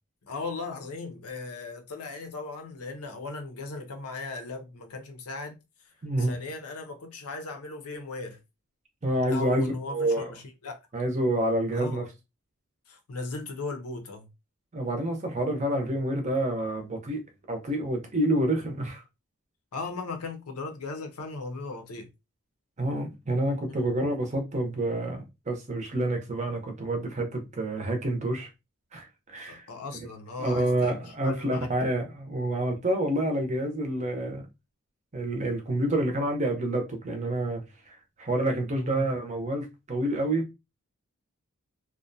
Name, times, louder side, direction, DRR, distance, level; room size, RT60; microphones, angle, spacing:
voice 1, 0.3-5.6 5.8-8.4 9.3-10.8 11.7-12.1 12.9-14.3 19.7-22.1 23.7-23.8 29.5-31.7 38.8-39.1, left 3 dB, 85° left, 0.6 m, -37 dB
voice 2, 6.0-6.3 9.0-10.3 10.9-12.0 14.7-19.0 22.8-28.5 28.9-29.7 30.4-34.4 35.1-37.6 37.9-40.5, right 1 dB, 30° right, 0.6 m, -28 dB
2.5 x 2.1 x 2.6 m
head